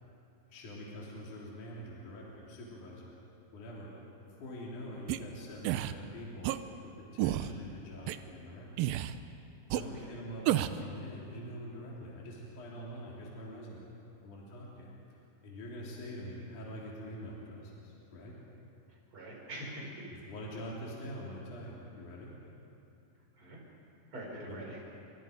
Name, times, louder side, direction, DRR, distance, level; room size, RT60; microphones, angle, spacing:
voice 1, 0.5-3.1 3.5-6.5 7.0-8.9 9.7-13.9 14.2-14.9 15.4-18.4 20.1-22.3 24.3-24.8, equal, 50° left, -4 dB, 4.6 m, -45 dB
sound 1, 5.1-5.2 5.6-5.9 6.4-6.6 7.2-7.5 8.1-8.2 8.8-9.2 9.7-9.8 10.5-10.8, right 14 dB, 80° right, 2.2 m, -30 dB
voice 2, 9.8-10.2 18.9-20.1 23.4-23.6 24.1-24.8, right 1 dB, 30° right, -2 dB, 6.2 m, -44 dB
30.0 x 27.0 x 5.2 m, 2.7 s
omnidirectional pair, 4.7 m